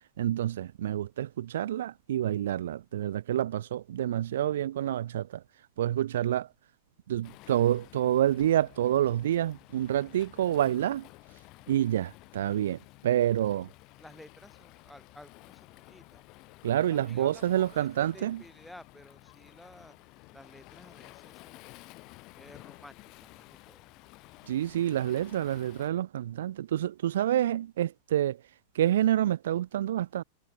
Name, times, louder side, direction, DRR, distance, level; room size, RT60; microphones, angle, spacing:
voice 1, 0.2-5.4 5.8-6.5 7.1-11.0 11.7-13.7 16.6-18.4 24.5-28.4 28.7-30.2, right 11 dB, 60° right, 0.3 m, -28 dB
voice 2, 6.1-6.5 13.1-13.3 14.0-16.2 16.9-20.0 20.3-21.9 22.4-23.9, left 1 dB, 5° left, 4.4 m, -54 dB
Waves surf, 7.2-25.9, left 22 dB, 40° left, 1.2 m, -53 dB
figure-of-eight pair, 90°, 0 cm